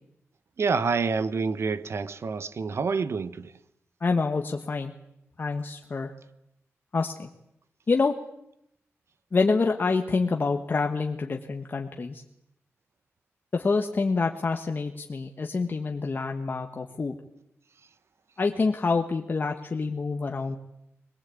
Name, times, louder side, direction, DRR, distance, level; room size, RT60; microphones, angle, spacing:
voice 1, 0.6-3.5, right 4 dB, 60° right, 1.1 m, -27 dB
voice 2, 4.0-4.9 5.4-6.1 6.9-7.3 7.9-8.1 9.3-12.2 13.5-17.1 18.4-20.6, left 4 dB, 40° left, 1.4 m, -27 dB
22.0 x 21.0 x 8.4 m
wide cardioid pair, 140°, 5 cm